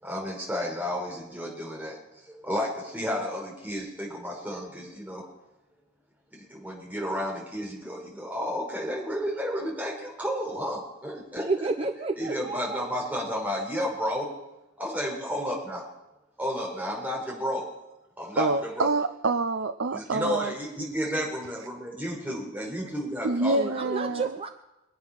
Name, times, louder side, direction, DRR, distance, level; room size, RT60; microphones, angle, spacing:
voice 1, 0.0-2.0 2.4-5.2 6.3-11.5 12.1-14.3 14.8-15.8 16.4-17.7 18.2-18.9 19.9-23.7, equal, 10° right, -3 dB, 4.9 m, -32 dB
voice 2, 11.5-12.9 23.3-24.5, right 3 dB, 30° right, 6 dB, 0.7 m, -31 dB
voice 3, 18.4-20.5 23.2-24.4, right 3 dB, 70° right, 8 dB, 0.6 m, -26 dB
23.0 x 9.4 x 5.9 m, 0.94 s
head